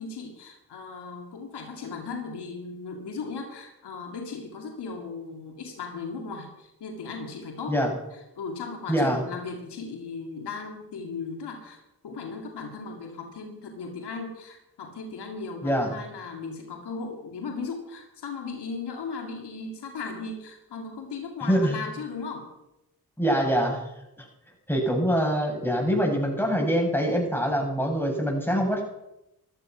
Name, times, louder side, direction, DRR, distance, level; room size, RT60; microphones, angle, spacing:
voice 1, 0.0-7.8 8.1-22.5, left 4 dB, 90° left, 3 dB, 2.3 m, -37 dB
voice 2, 8.9-9.2 15.6-15.9 21.5-21.8 23.2-23.8 24.2-24.3 24.7-28.8, equal, 5° left, 0 dB, 7.6 m, -24 dB
14.0 x 14.0 x 6.2 m, 0.89 s
supercardioid pair, 40°, 39 cm